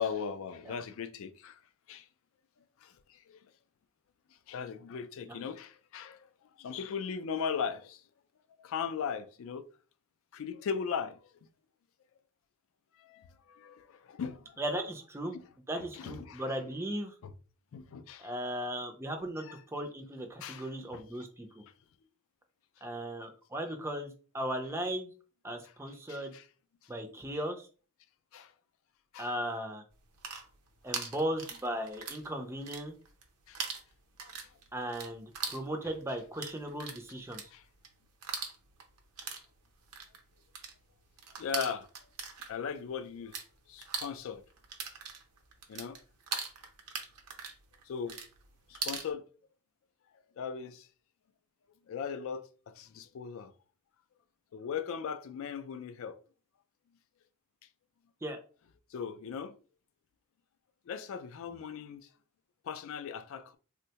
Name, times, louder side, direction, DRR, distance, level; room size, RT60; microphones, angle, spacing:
voice 1, 0.0-1.6 1.9-2.0 2.8-2.9 3.3-3.4 4.5-6.2 6.6-8.0 8.6-9.6 10.3-11.2 13.0-14.6 15.3-15.4 15.8-16.4 17.2-17.3 17.7-18.3 20.4-20.6 20.9-21.0 26.1-26.4 28.3-28.5 29.1-29.3 33.5-33.6 37.5-37.6 41.4-41.9 42.5-43.4 43.7-44.4 45.7-46.0 47.9-48.2 48.7-49.2 50.4-50.9 51.9-52.5 52.8-53.5 54.5-56.2 58.9-59.5 60.9-62.0 62.7-63.6, left 6 dB, 60° left, 0.3 m, -38 dB
voice 2, 14.6-15.4 15.7-17.1 18.2-19.4 19.7-21.6 22.8-25.1 25.4-26.3 26.9-27.7 29.2-29.8 30.8-32.9 34.7-37.4 58.2-58.4, right 1 dB, 10° right, 0.4 m, -37 dB
sound 1, 30.0-32.3 32.5-33.3 33.5-43.5 43.7-49.1, right 5 dB, 90° right, 0.7 m, -41 dB
3.5 x 2.1 x 2.8 m
head